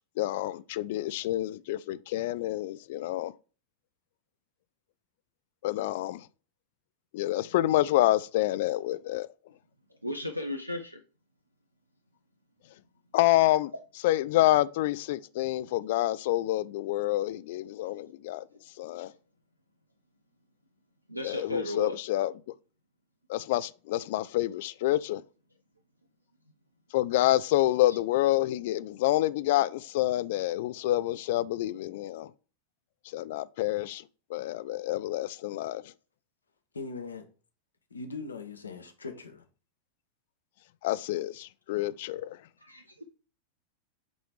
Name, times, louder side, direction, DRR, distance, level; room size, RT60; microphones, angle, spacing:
voice 1, 0.2-3.3 5.6-6.3 7.1-9.3 13.1-13.7 14.0-18.5 18.8-19.1 21.2-22.3 23.3-25.2 26.9-32.3 33.1-34.0 34.3-35.9 40.8-42.4, left 15 dB, 50° left, 0.3 m, -28 dB
voice 2, 10.0-11.0 17.8-18.0 21.1-22.0 27.9-28.0 42.6-43.0, left 1 dB, 90° right, 0.6 m, -35 dB
voice 3, 36.7-37.2 37.9-39.4, left 4 dB, 75° left, 1.1 m, -40 dB
7.9 x 3.1 x 4.7 m
figure-of-eight pair, 90°, 0 cm